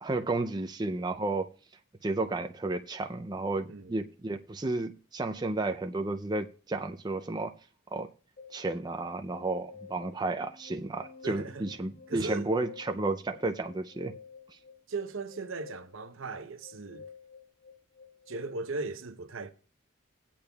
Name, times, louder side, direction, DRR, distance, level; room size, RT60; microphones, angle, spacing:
voice 1, 0.0-1.5 2.0-7.5 7.9-8.1 8.5-14.1 14.5-14.6, right 2 dB, 20° right, 0.4 m, -32 dB
voice 2, 3.7-4.0 11.2-11.7 12.1-12.5 14.9-17.1 18.3-19.5, right 3 dB, 70° right, 0.8 m, -37 dB
sound 1, 8.4-18.5, left 5 dB, 55° left, 6.5 m, -52 dB
18.5 x 8.6 x 2.3 m
head